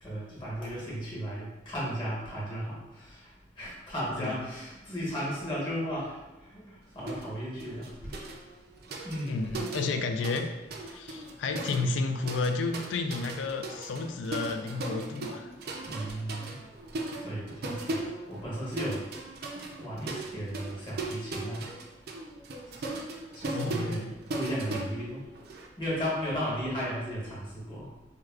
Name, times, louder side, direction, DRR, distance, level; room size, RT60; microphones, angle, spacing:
voice 1, 0.0-3.2 3.6-6.2 6.5-6.7 6.9-8.1 9.0-9.4 15.9-16.5 17.2-19.0 19.5-21.6 22.8-23.0 23.3-25.2 25.8-27.9, equal, 25° left, -6 dB, 1.1 m, -35 dB
sound 1, 7.1-7.3 7.6-10.4 10.7-25.7, right 2 dB, 60° right, 0.4 m, -38 dB
voice 2, 9.3-10.5 10.9-15.5 19.4-19.5 23.5-24.1, left 3 dB, 80° left, 6 dB, 0.3 m, -31 dB
4.6 x 2.2 x 2.3 m, 1.0 s
head